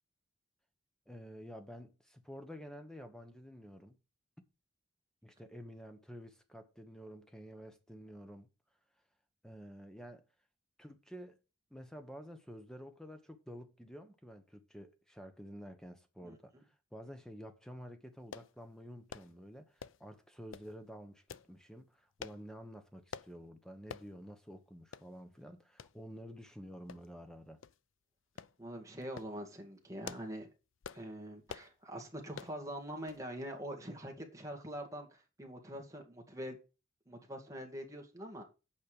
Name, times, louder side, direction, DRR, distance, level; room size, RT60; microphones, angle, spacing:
voice 1, 1.1-4.0 5.2-8.5 9.4-10.2 10.8-11.4 11.7-16.5 16.9-27.6, equal, 5° left, 1.1 m, -50 dB
sound 1, 18.3-18.5 19.1-19.3 19.8-20.1 20.5-20.7 21.3-21.5 22.2-22.4 23.1-23.3 23.9-24.1 24.5-24.6 24.9-25.1 25.8-25.9 26.9-27.3 27.6-27.8 28.4-28.5 29.0-29.3 29.8-30.4 30.8-31.1 31.5-31.7 32.3-32.6 33.1-33.3 33.5-33.6, left 6 dB, 70° left, 0.5 m, -47 dB
voice 2, 28.6-30.5 30.9-36.6 37.1-38.4, equal, 15° right, 2.1 m, -44 dB
8.4 x 5.4 x 6.7 m
head